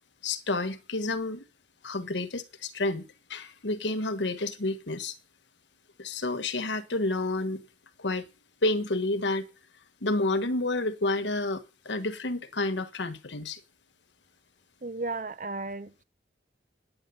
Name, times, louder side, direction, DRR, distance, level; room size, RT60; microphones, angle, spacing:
voice 1, 0.2-1.4 1.8-5.1 6.0-7.7 8.0-8.2 8.6-9.4 10.0-13.6, left 2 dB, 85° left, 1.4 m, -30 dB
voice 2, 14.8-16.0, right 3 dB, 45° right, 0.8 m, -34 dB
10.0 x 8.8 x 6.9 m
head